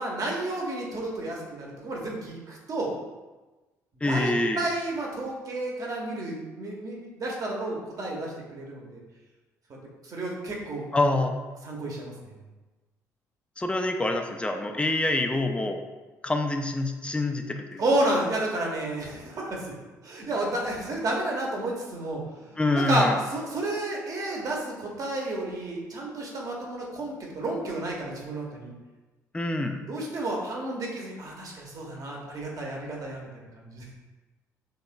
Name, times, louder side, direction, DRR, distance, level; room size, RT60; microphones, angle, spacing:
voice 1, 0.0-2.9 4.0-9.0 9.7-9.8 10.0-10.8 11.6-12.3 17.8-19.7 20.0-22.2 22.5-28.7 29.7-33.3 33.6-33.8, right 1 dB, 45° right, -2 dB, 1.2 m, -31 dB
voice 2, 4.0-4.6 10.9-11.3 13.6-15.8 16.2-17.8 22.6-23.2 29.3-29.8, left 2 dB, 10° left, 4 dB, 0.5 m, -26 dB
5.4 x 3.6 x 2.3 m, 1.2 s
figure-of-eight pair, 50°, 9 cm